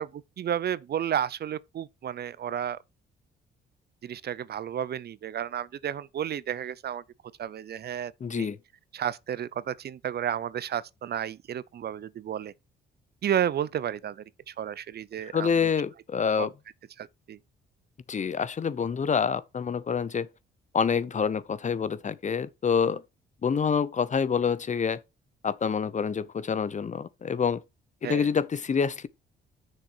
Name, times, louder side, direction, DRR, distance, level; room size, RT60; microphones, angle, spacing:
voice 1, 0.0-2.8 4.0-7.0 7.4-8.5 8.9-12.5 13.2-15.7 16.4-16.5 17.0-17.4 28.0-28.3, right 9 dB, 55° right, 0.7 m, -32 dB
voice 2, 8.2-8.6 15.3-16.5 18.1-20.3 20.7-23.0 23.4-25.0 25.4-27.6 28.0-29.1, left 6 dB, 35° left, 0.9 m, -27 dB
7.4 x 6.6 x 6.3 m
cardioid pair, 90°, 20 cm